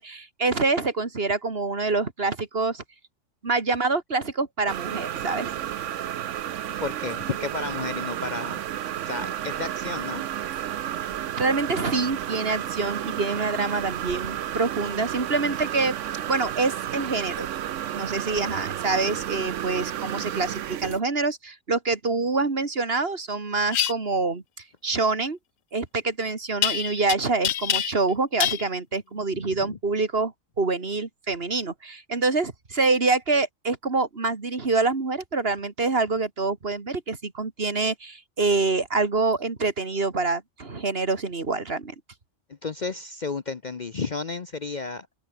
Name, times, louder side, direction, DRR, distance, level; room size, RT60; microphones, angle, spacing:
voice 1, 0.0-2.8 3.4-5.5 11.4-15.9 16.3-17.5 17.9-24.4 24.8-25.4 25.7-41.9, right 3 dB, 50° right, 2.4 m, -26 dB
sound 1, 4.7-21.0, right 11 dB, 70° right, 1.1 m, -32 dB
voice 2, 6.8-8.6 9.0-10.2 29.5-29.8 42.6-45.1, left 4 dB, 40° left, 0.9 m, -32 dB
sound 2, 23.7-23.9 26.6-27.1 27.4-28.1 28.4-28.6, left 11 dB, 80° left, 1.2 m, -25 dB
open air
omnidirectional pair, 1.3 m